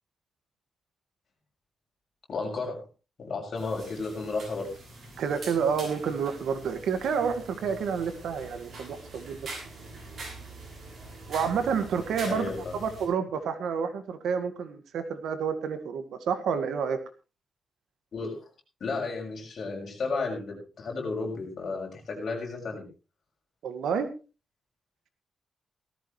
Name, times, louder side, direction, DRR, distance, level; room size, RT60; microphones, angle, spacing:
voice 1, 2.3-2.9 3.2-4.7 12.2-12.8 18.1-18.5 18.8-22.8, left 3 dB, 45° left, 0 dB, 6.5 m, -33 dB
sound 1, 3.6-13.1, right 2 dB, 45° right, 7.4 m, -44 dB
voice 2, 5.2-9.4 11.3-12.5 12.8-17.0 23.6-24.1, right 6 dB, 90° right, 9 dB, 1.9 m, -29 dB
18.0 x 14.0 x 3.2 m, 0.32 s
wide cardioid pair, 165°, 0 cm